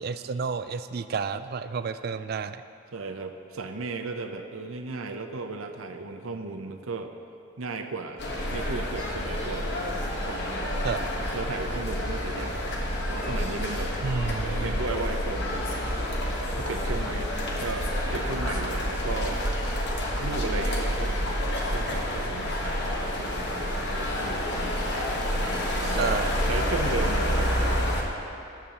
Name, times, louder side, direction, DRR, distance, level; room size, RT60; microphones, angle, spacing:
voice 1, 0.0-2.6 10.8-11.0 14.0-14.8 25.8-26.3, right 5 dB, 45° right, 11 dB, 0.3 m, -31 dB
voice 2, 2.9-7.1 7.6-8.2 8.5-10.7 11.3-13.9 14.4-16.0 16.5-19.4 20.2-24.8 25.4-27.8, right 3 dB, 75° right, 6 dB, 0.7 m, -36 dB
sound 1, 8.2-28.0, equal, 50° left, 1.2 m, -28 dB
19.0 x 6.9 x 3.0 m, 2.7 s
head